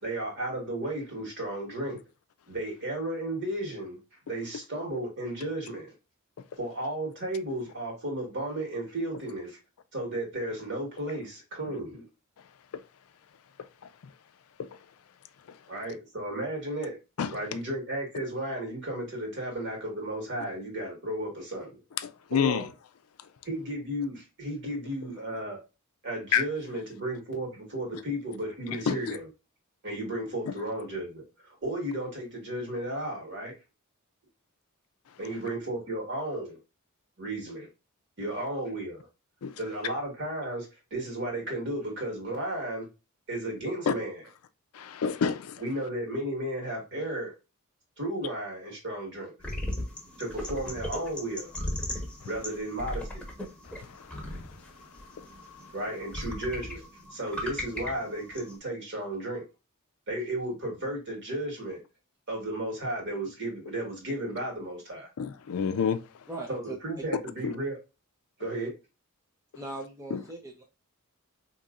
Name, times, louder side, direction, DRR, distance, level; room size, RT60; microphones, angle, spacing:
voice 1, 0.0-2.0 2.5-4.0 4.2-5.9 6.6-9.6 9.9-12.0 15.7-17.0 17.3-21.8 22.3-22.7 23.4-25.6 26.0-29.3 29.8-33.5 35.2-36.6 37.2-37.7 38.2-39.1 39.6-42.9 43.3-44.2 45.6-47.3 48.0-49.3 50.2-51.5 52.2-53.3 55.7-56.8 57.1-59.4 60.1-61.8 62.3-65.1 66.5-67.8 68.4-68.7, right 1 dB, 55° right, 1.7 m, -34 dB
voice 2, 22.0-22.7 26.3-26.4 28.9-29.0 30.5-30.6 39.4-39.6 43.9-44.0 44.7-45.6 53.6-54.6 55.2-55.3 65.2-66.0 67.4-67.5 70.1-70.2, left 7 dB, 70° left, 0.4 m, -29 dB
sound 1, 49.4-58.6, left 1 dB, 5° left, 1.0 m, -38 dB
voice 3, 66.3-66.8 69.6-70.6, right 2 dB, 15° right, 0.5 m, -39 dB
4.1 x 2.9 x 2.4 m
head